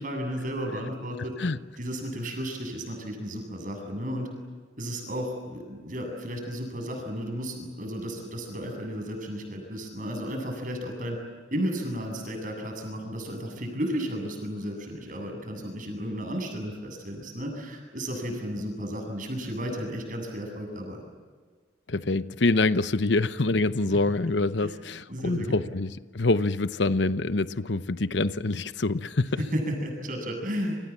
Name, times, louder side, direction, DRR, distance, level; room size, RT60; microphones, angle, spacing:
voice 1, 0.0-1.3 1.8-4.3 4.8-11.2 11.5-21.0 23.9-24.0 24.6-24.7 25.1-25.7 29.4-30.8, equal, 45° right, 4 dB, 7.9 m, -33 dB
voice 2, 21.9-29.4, left 2 dB, 70° left, 13 dB, 0.9 m, -26 dB
29.0 x 27.0 x 7.4 m, 1.5 s
head